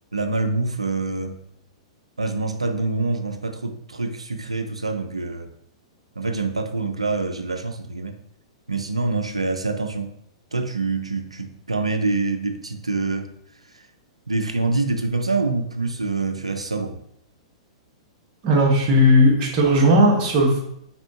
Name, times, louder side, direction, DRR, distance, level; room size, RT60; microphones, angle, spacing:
voice 1, 0.1-1.4 2.2-5.5 6.2-8.1 8.7-10.2 10.5-13.3 14.3-17.0, right 3 dB, 90° right, 7 dB, 0.4 m, -25 dB
voice 2, 18.4-20.6, equal, 40° right, -1 dB, 1.3 m, -16 dB
4.1 x 3.7 x 2.8 m, 0.71 s
figure-of-eight pair, 105°, 3 cm